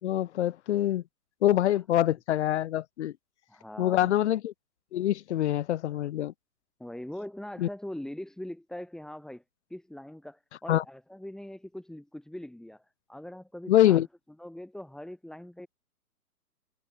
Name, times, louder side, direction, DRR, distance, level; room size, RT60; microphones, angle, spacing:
voice 1, 0.0-1.0 1.4-3.1 3.8-4.5 4.9-6.3 7.6-7.7 10.7-10.8 13.7-14.1, left 12 dB, 45° left, 4.0 m, -25 dB
voice 2, 3.5-4.1 6.8-9.4 9.7-14.1 14.4-15.7, left 1 dB, ahead, 6.0 m, -42 dB
hypercardioid pair, 140°, 46 cm